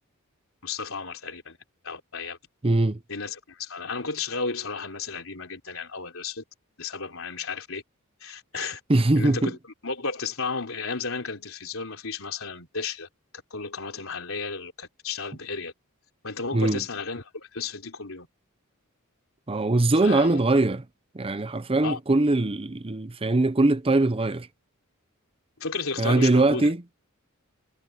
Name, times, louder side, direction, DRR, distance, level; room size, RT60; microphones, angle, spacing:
voice 1, 0.6-1.6 1.8-2.4 3.1-6.4 6.8-7.8 8.2-8.8 9.1-9.6 9.8-13.1 13.5-15.7 16.2-18.3 20.0-20.4 21.8-22.0 25.6-26.7, left 4 dB, 65° left, 4.1 m, -33 dB
voice 2, 2.6-3.0 8.9-9.5 16.5-16.8 19.5-20.8 21.1-24.5 26.0-26.8, right 2 dB, 25° right, 0.7 m, -22 dB
head